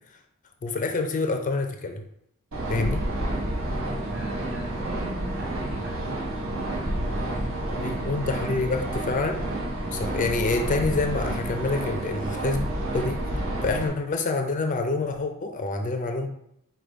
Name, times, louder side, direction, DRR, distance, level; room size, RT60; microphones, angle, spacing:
voice 1, 0.6-2.0 2.7-3.0 7.8-9.4 9.9-12.6 12.9-13.3 13.6-16.3, left 3 dB, 35° left, 4 dB, 0.4 m, -27 dB
sound 1, 2.5-13.9, right 1 dB, 75° right, 1.3 m, -30 dB
voice 2, 4.0-8.0 13.6-13.8, right 2 dB, 60° right, -4 dB, 1.6 m, -41 dB
5.0 x 2.3 x 4.6 m, 0.75 s
head